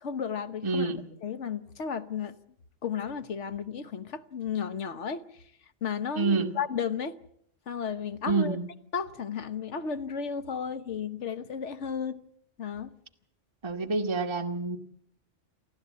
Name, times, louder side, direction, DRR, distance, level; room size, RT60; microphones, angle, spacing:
voice 1, 0.0-0.9 1.2-2.3 2.8-5.4 5.8-7.2 7.7-8.6 8.9-12.2 12.6-12.9, left 6 dB, 75° left, 1.4 m, -33 dB
voice 2, 0.6-1.0 6.2-6.5 8.3-8.7 13.6-14.8, right 3 dB, 25° right, 1.4 m, -27 dB
29.5 x 12.0 x 8.3 m
omnidirectional pair, 1.2 m